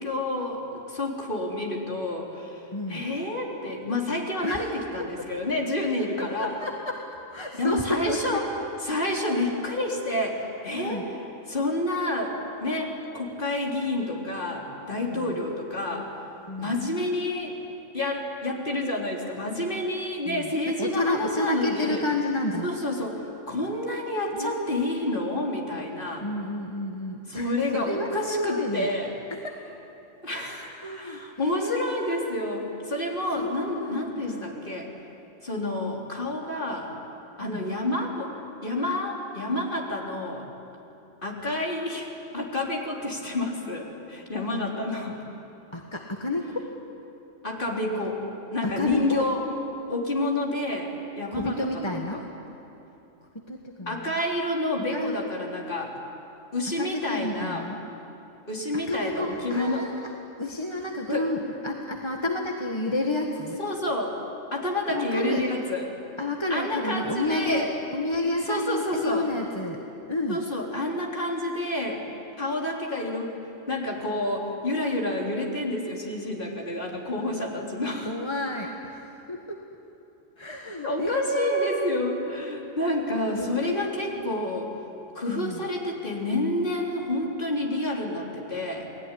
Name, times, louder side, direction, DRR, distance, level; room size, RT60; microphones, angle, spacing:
voice 1, 0.0-2.6 2.9-6.6 7.5-8.5 8.8-11.1 11.5-16.1 16.6-17.6 17.9-22.0 22.6-26.3 27.3-29.1 30.2-34.9 35.4-36.9 37.4-38.3 38.6-40.5 41.2-45.2 47.4-48.2 48.5-49.4 49.9-50.9 51.2-52.2 53.9-55.9 56.5-57.7 58.5-59.9 61.1-61.3 63.6-64.2 64.5-65.9 66.5-67.7 68.5-69.3 70.3-72.0 72.4-73.4 73.7-78.2 80.8-84.7 85.1-88.9, left 1 dB, 40° left, -1 dB, 3.9 m, -29 dB
voice 2, 2.7-3.0 4.4-4.6 6.4-6.9 7.3-8.4 10.8-11.0 15.1-15.4 16.5-16.7 20.3-20.5 20.8-22.7 24.3-25.1 26.2-28.9 29.4-29.5 30.6-32.5 33.4-34.5 37.4-37.7 45.7-46.7 48.6-49.2 51.3-52.2 53.3-54.1 54.9-55.3 56.8-57.8 58.9-60.1 60.4-63.6 64.9-65.4 66.2-67.7 67.9-69.8 70.1-70.4 78.0-79.0 79.3-79.6 80.4-81.9 83.3-83.9 84.2-84.3 85.3-85.6, left 1 dB, 20° left, 1 dB, 1.6 m, -30 dB
29.0 x 20.0 x 10.0 m, 2.9 s
omnidirectional pair, 1.3 m